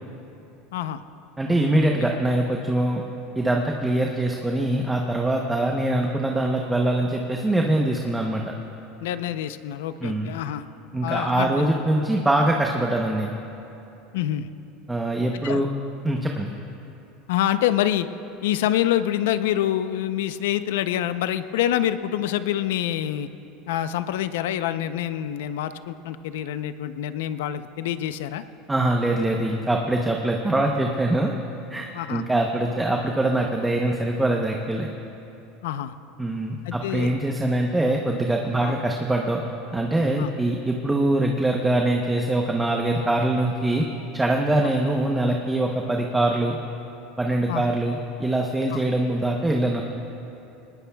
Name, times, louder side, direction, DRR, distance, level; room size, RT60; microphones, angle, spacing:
voice 1, 0.7-1.0 9.0-10.6 11.0-11.7 14.1-14.5 15.4-15.6 17.3-18.1 18.4-23.3 23.7-28.4 31.9-32.2 35.6-35.9 36.6-37.1 38.6-38.8 40.2-40.3 44.6-44.7 47.5-47.6 48.7-48.8, left 12 dB, 90° left, 11 dB, 0.6 m, -26 dB
voice 2, 1.4-3.0 3.3-8.4 10.0-10.3 10.9-13.3 14.9-15.7 16.0-16.5 28.7-31.3 31.7-34.9 36.2-39.4 39.7-43.8 44.1-46.6 47.2-49.8, right 1 dB, 10° right, 1 dB, 0.8 m, -23 dB
23.5 x 20.0 x 2.3 m, 2.9 s
supercardioid pair, 145°, 0 cm